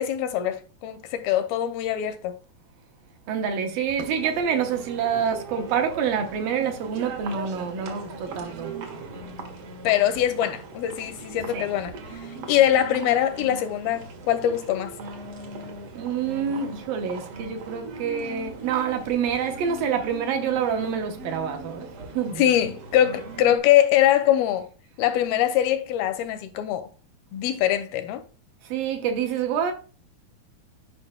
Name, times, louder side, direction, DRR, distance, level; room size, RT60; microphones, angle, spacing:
voice 1, 0.0-2.4 9.8-11.9 12.5-14.9 22.4-24.7 25.0-26.9 27.3-28.2, left 11 dB, 80° left, 2.3 m, -23 dB
voice 2, 3.3-8.7 11.5-11.7 15.9-21.9 22.1-22.4 28.6-29.7, right 7 dB, 70° right, 2.4 m, -27 dB
sound 1, 4.0-23.6, right 3 dB, 55° right, 1.7 m, -39 dB
11.0 x 5.4 x 2.2 m
omnidirectional pair, 4.6 m